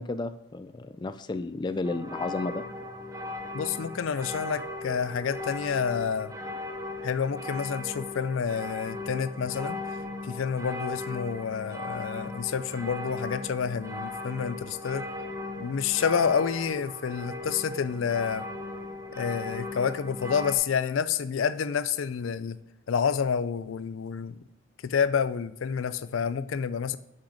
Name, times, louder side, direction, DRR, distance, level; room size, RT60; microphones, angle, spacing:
voice 1, 0.0-2.6, left 3 dB, 20° left, 10 dB, 0.3 m, -32 dB
sound 1, 1.8-20.6, left 2 dB, 15° right, 0.7 m, -37 dB
voice 2, 3.5-6.3 7.0-9.8 10.2-15.1 15.6-18.5 19.1-22.6 22.9-24.4 24.8-27.0, left 6 dB, 85° left, 14 dB, 0.4 m, -29 dB
6.6 x 5.9 x 5.1 m, 0.81 s
head